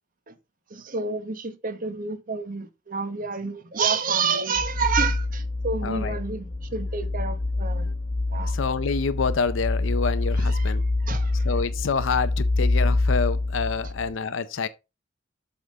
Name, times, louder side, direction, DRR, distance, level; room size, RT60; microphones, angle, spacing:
voice 1, 0.7-7.9 8.3-8.5 10.4-10.7 11.0-11.4, right 5 dB, 45° right, 1.0 m, -29 dB
sound 1, 4.6-14.1, left 2 dB, 40° left, 1.1 m, -26 dB
voice 2, 5.8-6.2 7.8-7.9 8.4-10.8 11.4-14.7, left 5 dB, 75° left, 0.6 m, -27 dB
8.0 x 3.7 x 5.2 m
head